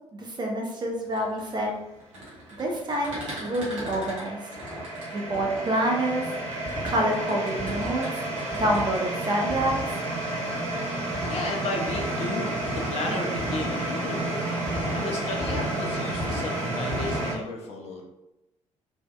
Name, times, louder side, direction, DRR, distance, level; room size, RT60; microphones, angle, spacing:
voice 1, 0.1-1.8 2.6-4.4 5.1-6.3 6.8-8.1 8.6-9.7 13.0-13.2, right 1 dB, 30° right, 0 dB, 0.6 m, -27 dB
sound 1, 1.0-5.7 6.4-9.0, right 1 dB, 85° right, 0.7 m, -41 dB
sound 2, 2.7-17.3, right 2 dB, 50° right, 1.0 m, -31 dB
sound 3, 3.1-3.4 3.8-4.1 4.6-4.8 5.3-5.6 6.7-7.1 7.6-8.0 8.5-8.9 9.5-9.9 11.1-11.5 11.9-12.2 12.6-12.9 13.4-13.7 14.7-15.0 15.4-15.7 16.1-16.5 16.9-17.3, left 2 dB, 5° left, 0.9 m, -35 dB
voice 2, 11.3-14.6 14.9-18.0, left 2 dB, 40° left, 1 dB, 0.4 m, -34 dB
2.6 x 2.1 x 2.2 m, 0.92 s
figure-of-eight pair, 45°, 16 cm